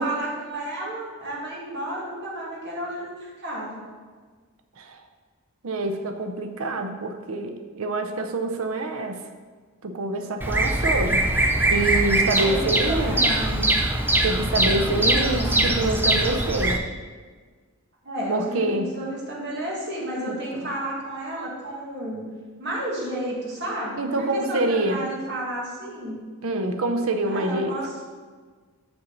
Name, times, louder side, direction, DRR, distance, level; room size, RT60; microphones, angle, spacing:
voice 1, 0.0-3.8 12.3-13.8 14.6-15.8 18.0-22.3 22.6-26.2 27.3-27.9, right 1 dB, 50° right, -5 dB, 1.9 m, -32 dB
voice 2, 5.6-9.2 9.8-11.3 11.6-13.2 14.2-16.8 18.3-18.9 20.2-20.7 24.0-25.1 26.4-27.8, right 2 dB, 65° right, 6 dB, 0.6 m, -26 dB
Bird vocalization bird call bird song, 10.4-16.8, right 1 dB, 10° right, 0.4 m, -22 dB
6.8 x 6.8 x 4.0 m, 1.5 s
head